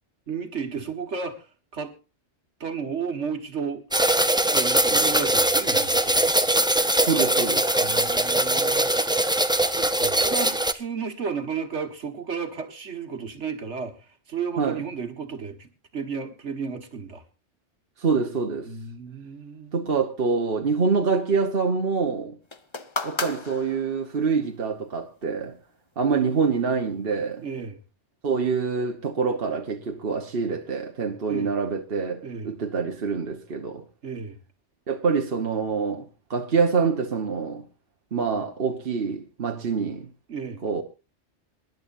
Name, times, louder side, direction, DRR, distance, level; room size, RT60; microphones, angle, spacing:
voice 1, 0.3-1.9 2.6-3.8 4.5-6.5 7.8-8.9 9.6-17.2 18.7-19.9 27.4-27.8 31.3-31.6 32.2-32.5 34.0-34.4 40.3-40.6, right 6 dB, 70° right, 2.0 m, -33 dB
sound 1, 3.9-10.7, right 1 dB, 5° right, 0.7 m, -21 dB
voice 2, 7.0-7.7 14.6-14.8 18.0-18.7 19.7-22.4 23.0-25.6 26.0-27.4 28.2-33.8 34.9-37.6 38.1-40.1 40.6-40.8, right 5 dB, 55° right, 1.5 m, -26 dB
sound 2, 22.5-24.3 25.2-25.3, left 3 dB, 25° left, 0.9 m, -34 dB
27.0 x 11.0 x 2.6 m
omnidirectional pair, 1.2 m